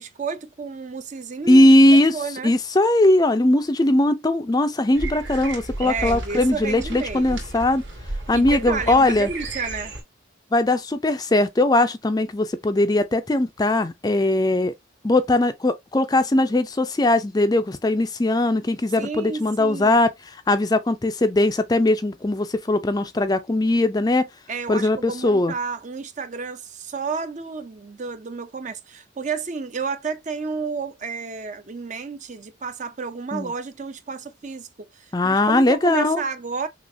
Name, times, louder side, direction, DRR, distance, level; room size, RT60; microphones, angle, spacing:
voice 1, 0.0-1.8 2.1-2.5 5.8-7.4 8.3-9.9 19.0-20.0 24.5-36.7, right 5 dB, 35° right, 0.5 m, -31 dB
voice 2, 1.5-2.2 2.4-7.8 8.3-9.3 10.5-14.7 15.0-24.3 24.7-25.5 33.3-33.5 35.1-36.2, left 1 dB, 20° left, 0.4 m, -19 dB
sound 1, 4.9-10.0, right 2 dB, 65° right, 2.4 m, -33 dB
6.1 x 2.4 x 2.6 m
head